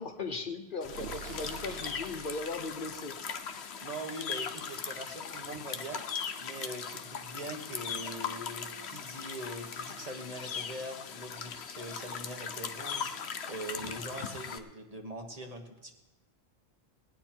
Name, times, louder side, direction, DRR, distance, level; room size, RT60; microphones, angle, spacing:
voice 1, 0.0-3.2, left 3 dB, 55° left, 5 dB, 1.0 m, -38 dB
sound 1, 0.8-14.6, left 6 dB, 90° left, 1.1 m, -39 dB
sound 2, 0.8-3.0, right 7 dB, 70° right, 0.9 m, -45 dB
voice 2, 3.8-6.0 6.4-16.0, right 1 dB, 35° right, 3 dB, 1.5 m, -42 dB
19.5 x 9.6 x 4.5 m, 1.0 s
omnidirectional pair, 1.1 m